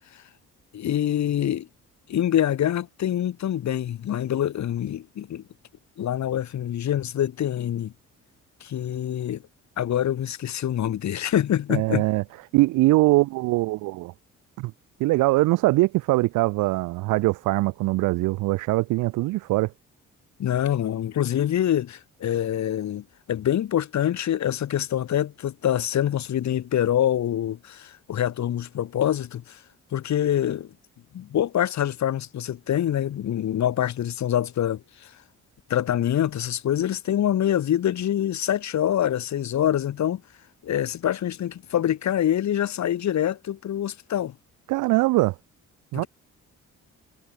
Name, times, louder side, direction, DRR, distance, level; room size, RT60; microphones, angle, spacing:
voice 1, 0.7-1.7 2.1-5.4 6.0-7.9 8.6-9.4 9.8-12.1 20.4-29.6 29.9-30.7 31.1-35.1 35.7-40.2 40.6-44.4 45.9-46.1, left 11 dB, 65° left, 3.3 m, -25 dB
voice 2, 11.7-12.2 12.5-14.1 14.6-14.7 15.0-19.7 44.7-45.4 45.9-46.0, right 20 dB, 90° right, 0.5 m, -22 dB
cardioid pair, 90°, 30 cm